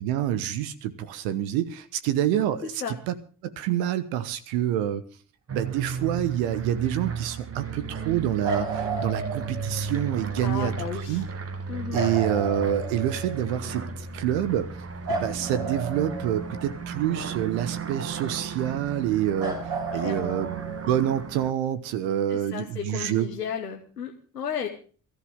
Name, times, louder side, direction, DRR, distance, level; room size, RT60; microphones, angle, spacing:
voice 1, 0.0-3.2 3.4-5.0 5.5-11.2 11.9-14.7 15.1-23.3, right 11 dB, 70° right, 13 dB, 1.2 m, -27 dB
sound 1, 5.5-21.5, right 5 dB, 30° right, 1.7 m, -35 dB
sound 2, 8.4-9.9 11.9-13.6 15.1-17.0 19.4-21.1 23.2-23.3, right 3 dB, 50° right, 6.6 m, -33 dB
voice 2, 10.4-11.2 11.7-12.0 19.9-20.4 22.3-24.7, left 7 dB, 90° left, 2 dB, 1.2 m, -34 dB
21.0 x 14.0 x 3.6 m, 0.40 s
figure-of-eight pair, 40°, 46 cm